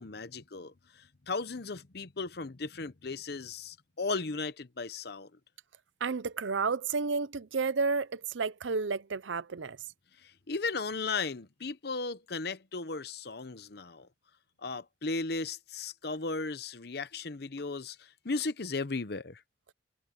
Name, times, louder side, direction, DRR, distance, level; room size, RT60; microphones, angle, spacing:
voice 1, 0.0-5.3 10.2-14.1 14.6-19.4, left 3 dB, 55° left, 0.9 m, -36 dB
voice 2, 6.0-9.8, right 4 dB, 85° right, 0.7 m, -31 dB
head